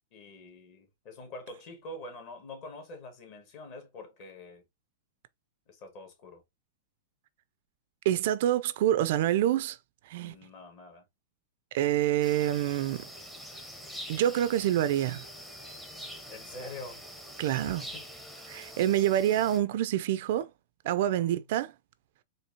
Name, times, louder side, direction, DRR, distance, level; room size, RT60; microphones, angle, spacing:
voice 1, 0.1-4.6 5.7-6.4 10.2-11.1 16.3-17.0 17.6-18.0 20.8-21.5, left 2 dB, 45° left, 1.8 m, -45 dB
voice 2, 8.1-9.8 10.1-10.3 11.7-13.1 14.1-15.2 17.4-17.8 18.5-20.5 20.8-21.7, right 12 dB, 60° right, 0.4 m, -26 dB
sound 1, 12.2-19.6, equal, 5° left, 0.7 m, -45 dB
4.5 x 2.7 x 2.7 m
hypercardioid pair, 140°, 0 cm